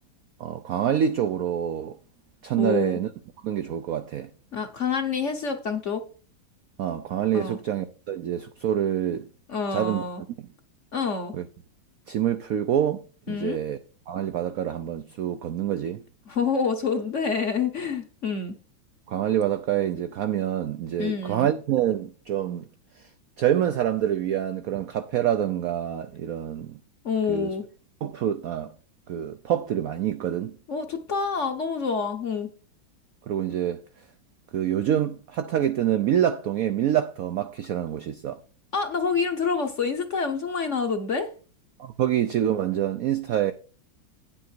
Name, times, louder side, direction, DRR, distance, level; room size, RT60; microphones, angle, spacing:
voice 1, 0.4-2.0 2.4-3.1 3.4-4.3 6.8-9.3 9.7-10.0 10.4-10.5 11.3-11.5 12.1-13.8 14.1-16.0 19.1-22.7 23.0-23.1 23.4-26.8 27.3-27.5 28.0-28.7 29.1-30.6 33.3-33.8 34.5-38.4 41.8-43.5, right 10 dB, 75° right, 0.8 m, -26 dB
voice 2, 2.6-3.0 4.5-6.0 7.3-7.6 9.5-10.2 10.9-11.3 13.3-13.6 16.3-18.5 21.0-21.5 27.0-27.7 30.7-32.5 38.7-41.3, left 5 dB, 50° left, 1.0 m, -27 dB
9.3 x 7.6 x 4.5 m
omnidirectional pair, 2.1 m